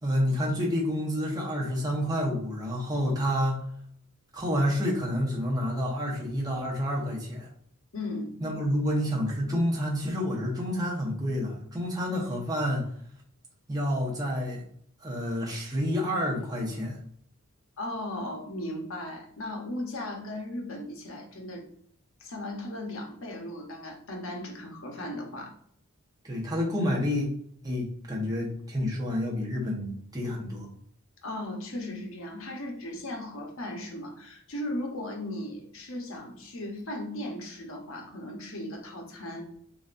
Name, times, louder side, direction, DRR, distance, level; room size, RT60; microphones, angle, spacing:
voice 1, 0.0-3.6 4.3-7.5 8.4-12.8 13.7-14.6 15.0-17.0 26.2-27.3 27.6-30.7, equal, 15° right, -2 dB, 1.1 m, -29 dB
voice 2, 7.9-8.4 17.8-21.6 22.2-25.5 31.2-39.4, left 1 dB, 65° left, 1 dB, 1.0 m, -37 dB
7.0 x 2.8 x 2.6 m, 0.66 s
head